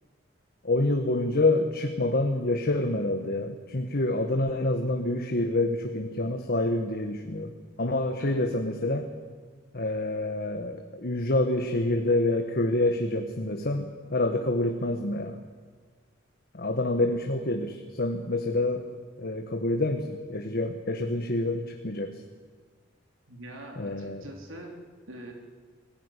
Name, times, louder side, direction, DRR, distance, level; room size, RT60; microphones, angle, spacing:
voice 1, 0.6-9.1 9.7-15.4 16.5-18.8 19.2-22.2 23.8-24.2, left 2 dB, 50° left, 4 dB, 1.5 m, -27 dB
voice 2, 23.3-24.8 25.1-25.3, right 1 dB, 90° right, 1 dB, 3.8 m, -43 dB
22.5 x 16.0 x 9.9 m, 1.5 s
head